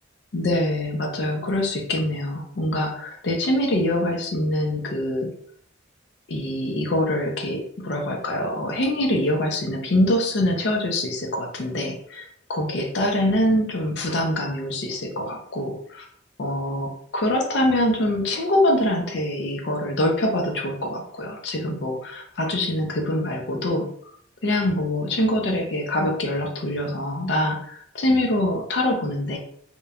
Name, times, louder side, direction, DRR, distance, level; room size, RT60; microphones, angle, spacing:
voice 1, 0.3-5.3 6.3-16.0 16.4-23.9 24.4-29.4, left 1 dB, 65° left, 1 dB, 0.5 m, -24 dB
2.9 x 2.1 x 2.4 m, 0.62 s
head